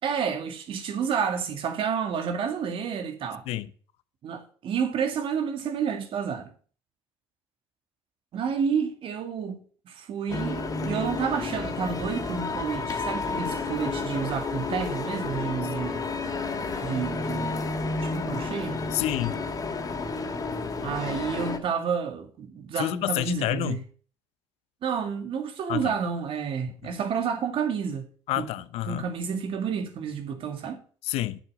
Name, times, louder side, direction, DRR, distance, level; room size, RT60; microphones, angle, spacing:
voice 1, 0.0-3.4 4.2-6.5 8.3-9.6 9.9-16.1 16.8-17.7 18.0-18.8 20.8-23.8 24.8-28.1 28.4-28.5 28.9-30.8, right 7 dB, 60° right, 2.3 m, -30 dB
sound 1, 10.3-21.6, left 3 dB, 35° left, 2.8 m, -31 dB
voice 2, 18.9-19.4 22.8-23.8 25.7-25.9 26.8-26.9 28.3-29.0 31.0-31.4, left 15 dB, 75° left, 0.8 m, -28 dB
9.9 x 7.8 x 6.5 m
supercardioid pair, 75°, 10 cm